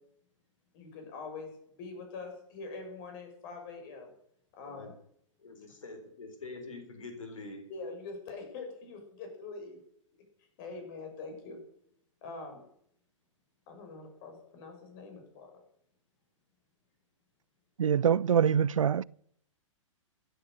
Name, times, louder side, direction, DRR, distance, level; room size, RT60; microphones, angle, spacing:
voice 1, 0.7-1.5 1.8-4.1 4.5-4.9 7.7-9.8 10.6-11.6 12.2-12.6 13.7-15.6, left 3 dB, 40° left, 6.6 m, -44 dB
voice 2, 4.6-4.9 5.4-7.7, left 3 dB, 75° left, 4.1 m, -45 dB
voice 3, 17.8-19.0, right 8 dB, 75° right, 0.5 m, -24 dB
16.0 x 10.0 x 6.6 m
figure-of-eight pair, 120°, 17 cm